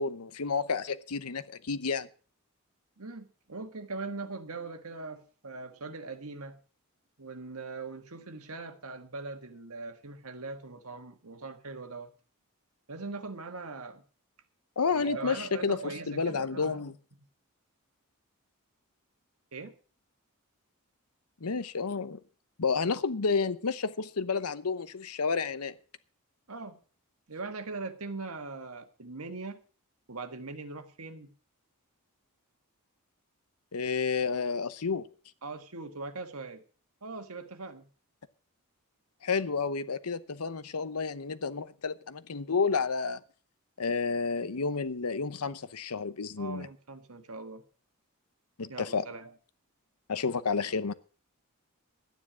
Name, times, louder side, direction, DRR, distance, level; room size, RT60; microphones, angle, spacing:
voice 1, 0.0-2.1 14.8-17.0 21.4-22.2 22.6-25.7 33.7-35.1 39.2-43.2 43.8-46.7 48.6-49.0 50.1-50.9, left 5 dB, 85° left, 0.9 m, -30 dB
voice 2, 3.0-6.6 7.2-12.1 12.9-14.0 14.9-16.8 19.5-19.8 26.5-26.8 27.3-29.6 30.1-31.3 35.4-36.6 37.0-37.9 46.4-47.6 48.7-49.3, right 3 dB, 75° right, 1.6 m, -41 dB
12.0 x 9.8 x 6.2 m
head